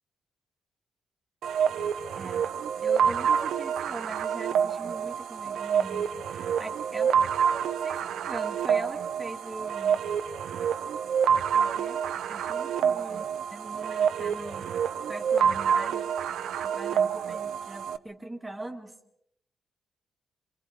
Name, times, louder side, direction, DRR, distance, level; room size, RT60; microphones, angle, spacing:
sound 1, 1.4-18.0, right 7 dB, 85° right, 0.8 m, -27 dB
voice 1, 2.2-2.5 2.8-7.2 7.5-10.0 11.5-12.0 12.3-14.7 15.1-16.1 16.6-18.9, right 2 dB, 15° right, 3 dB, 1.9 m, -41 dB
27.5 x 24.0 x 4.9 m, 0.75 s
cardioid pair, 140°, 0 cm